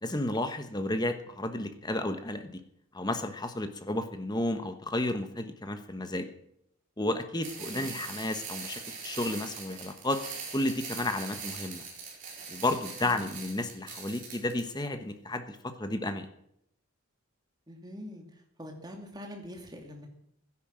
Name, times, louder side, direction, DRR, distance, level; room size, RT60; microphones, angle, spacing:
voice 1, 0.0-2.6 2.9-6.3 7.0-10.2 10.5-11.8 12.5-16.3, left 1 dB, 20° left, 8 dB, 1.1 m, -32 dB
sound 1, 7.4-14.6, right 5 dB, 40° right, 4.4 m, -42 dB
voice 2, 17.7-18.2 18.6-20.1, equal, 20° right, 2 dB, 2.6 m, -44 dB
12.5 x 10.5 x 7.6 m, 0.75 s
head